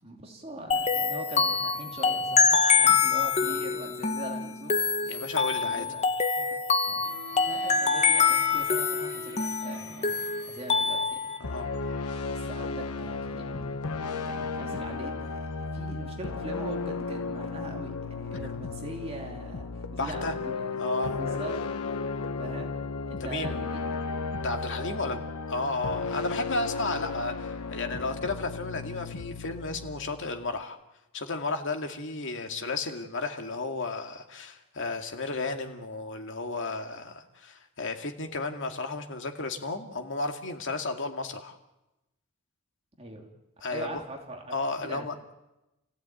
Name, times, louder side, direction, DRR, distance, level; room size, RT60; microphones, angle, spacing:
voice 1, 0.0-4.8 5.6-6.1 6.8-10.2 10.5-11.2 12.2-13.8 14.2-20.8 21.2-21.5 22.4-22.7 23.1-23.8 24.8-25.1 25.6-26.0 32.5-32.6 43.0-43.3 43.7-44.5 44.8-45.0, right 1 dB, 25° right, 1 dB, 3.0 m, -42 dB
sound 1, 0.7-11.4, left 5 dB, 30° left, 1.2 m, -25 dB
voice 2, 5.0-5.9 6.4-6.5 11.4-11.9 19.9-20.3 20.8-21.2 23.2-23.6 24.4-25.2 25.5-30.8 31.1-41.6 43.6-43.9 44.5-45.3, left 3 dB, 55° left, 5 dB, 2.3 m, -33 dB
Bowed string instrument, 6.9-12.2, right 1 dB, 45° right, 7.9 m, -47 dB
sound 2, 11.4-30.6, left 4 dB, 90° left, 1.1 m, -34 dB
29.0 x 16.0 x 9.2 m, 0.97 s
head